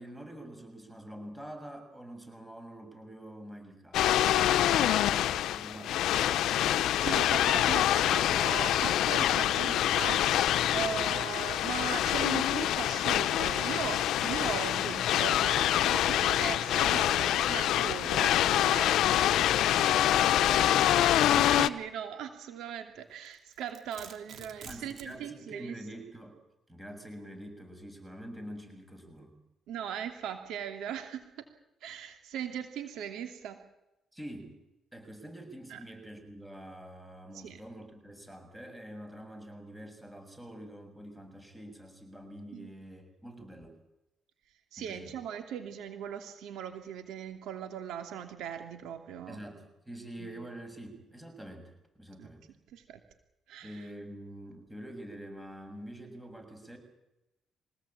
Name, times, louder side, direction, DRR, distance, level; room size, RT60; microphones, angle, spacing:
voice 1, 0.0-4.1 4.5-5.2 5.5-6.0 18.6-21.0 21.3-21.5 24.7-26.3 26.7-29.4 34.1-34.5 34.9-43.8 44.8-45.2 49.3-52.4 53.6-56.8, right 1 dB, 10° right, 5 dB, 7.0 m, -46 dB
sound 1, 3.9-21.7, left 12 dB, 85° left, 0.9 m, -26 dB
voice 2, 4.7-5.1 5.7-6.0 7.0-10.4 10.7-19.5 21.4-25.8 29.7-31.4 31.8-33.6 35.7-35.8 37.3-37.6 42.5-42.7 44.7-49.4 50.2-50.3 52.2-52.3 52.7-53.0 53.5-53.9, right 9 dB, 85° right, 6 dB, 2.8 m, -39 dB
Domestic sounds home sounds, 23.2-25.2, right 6 dB, 60° right, 3.2 m, -48 dB
24.0 x 18.0 x 8.8 m, 0.92 s
cardioid pair, 90°, 0 cm